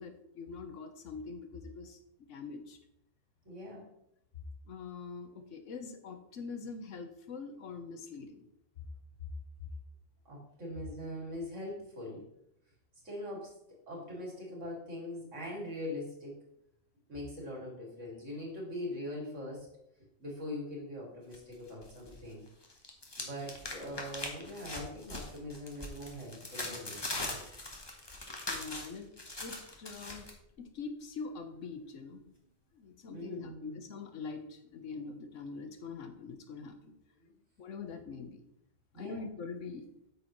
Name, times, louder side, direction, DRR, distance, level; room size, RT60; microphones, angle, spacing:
voice 1, 0.0-2.0 2.3-2.8 4.7-8.5 8.8-8.9 28.5-29.1 29.4-30.3 30.6-32.3 32.7-36.9 37.6-38.4 38.9-39.9, left 4 dB, 85° left, 7 dB, 1.3 m, -44 dB
voice 2, 3.4-3.9 10.2-12.3 13.0-16.4 17.1-19.7 20.2-22.4 23.2-27.4 33.1-33.8 37.2-37.3 38.9-39.2, left 1 dB, 90° right, -2 dB, 2.9 m, -42 dB
sound 1, 21.3-22.2 22.5-30.3, left 2 dB, 20° left, 1.1 m, -41 dB
8.5 x 6.5 x 3.1 m, 0.78 s
omnidirectional pair, 1.2 m